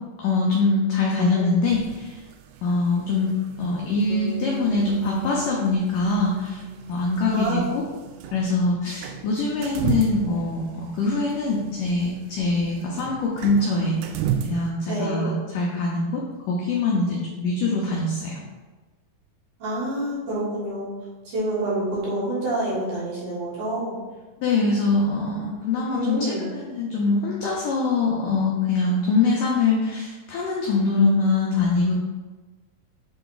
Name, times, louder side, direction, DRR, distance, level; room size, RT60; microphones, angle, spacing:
voice 1, 0.2-2.2 2.6-3.3 3.6-6.6 6.9-7.8 8.3-14.0 14.4-16.2 16.5-18.4 24.4-31.9, left 3 dB, 80° left, -3 dB, 1.9 m, -23 dB
voice 2, 1.2-1.5 7.3-7.7 14.9-15.3 19.6-20.9 21.2-24.0 25.9-26.4, right 1 dB, 55° right, -7 dB, 2.8 m, -27 dB
sound 1, 1.7-14.7, right 9 dB, 85° right, 2.7 m, -35 dB
sound 2, 4.1-8.3, equal, 55° left, 1.7 m, -38 dB
8.1 x 3.4 x 3.9 m, 1.3 s
omnidirectional pair, 4.8 m